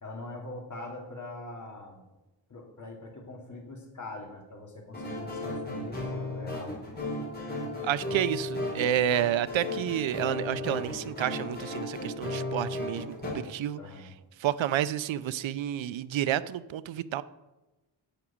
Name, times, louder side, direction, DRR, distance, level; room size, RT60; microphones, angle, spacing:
voice 1, 0.0-2.0 2.5-6.8 13.8-14.1, left 2 dB, 40° left, 1 dB, 2.6 m, -43 dB
sound 1, 4.9-13.3, left 2 dB, 20° left, 5.0 m, -35 dB
voice 2, 7.8-13.8 14.4-17.2, right 11 dB, 85° right, 16 dB, 0.6 m, -30 dB
11.0 x 6.9 x 8.7 m, 1.1 s
wide cardioid pair, 175°, 45 cm